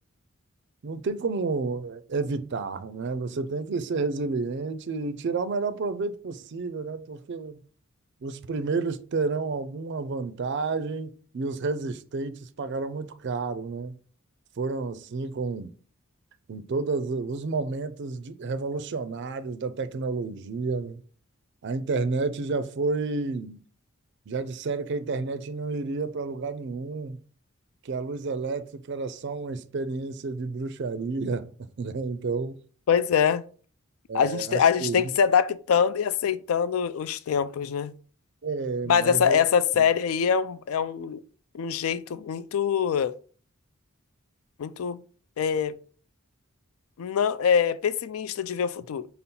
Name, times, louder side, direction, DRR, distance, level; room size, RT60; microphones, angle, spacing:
voice 1, 0.8-7.6 8.2-13.9 14.6-15.7 16.5-21.0 21.6-23.6 24.3-27.2 27.8-31.5 31.8-32.6 34.1-35.0 38.4-39.4 39.8-39.9, right 4 dB, 55° right, 0.4 m, -30 dB
voice 2, 32.9-33.4 34.1-37.9 38.9-41.2 41.5-43.1 44.6-45.0 45.4-45.7 47.0-49.1, left 7 dB, 80° left, 0.4 m, -24 dB
5.3 x 2.0 x 4.2 m
head